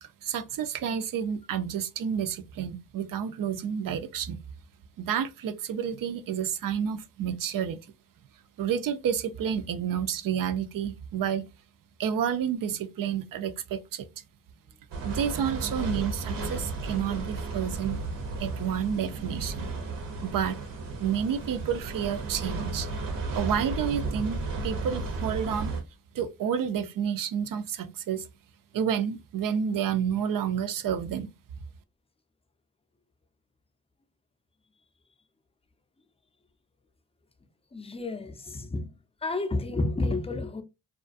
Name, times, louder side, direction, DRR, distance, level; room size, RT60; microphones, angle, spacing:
voice 1, 0.0-4.4 5.0-7.8 8.6-11.5 12.0-14.1 15.0-18.0 18.4-19.7 20.2-20.6 21.0-22.9 23.4-25.7 26.1-28.3 28.7-31.3, right 8 dB, 50° right, 0.5 m, -30 dB
sound 1, 14.9-25.8, right 3 dB, 70° right, 0.8 m, -34 dB
voice 2, 37.7-38.9 39.2-40.6, left 2 dB, 15° left, 0.5 m, -30 dB
2.4 x 2.2 x 2.5 m
supercardioid pair, 55°, 43 cm